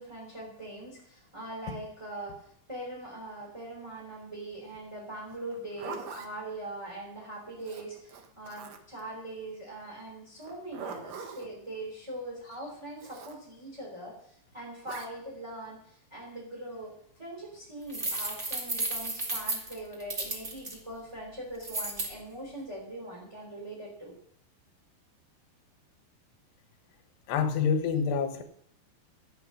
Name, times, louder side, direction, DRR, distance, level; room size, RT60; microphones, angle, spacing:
voice 1, 0.0-16.9 17.2-24.1, right 1 dB, 10° right, -4 dB, 2.7 m, -42 dB
Zipper (clothing), 5.5-6.3 7.6-9.0 10.4-11.5 13.0-13.4 14.8-15.1, right 6 dB, 80° right, 1.5 m, -42 dB
sound 1, 17.9-20.7 21.6-22.1, right 2 dB, 30° right, 1.3 m, -33 dB
voice 2, 27.3-28.4, left 6 dB, 70° left, 7 dB, 3.3 m, -27 dB
16.0 x 8.8 x 6.3 m, 0.67 s
omnidirectional pair, 5.2 m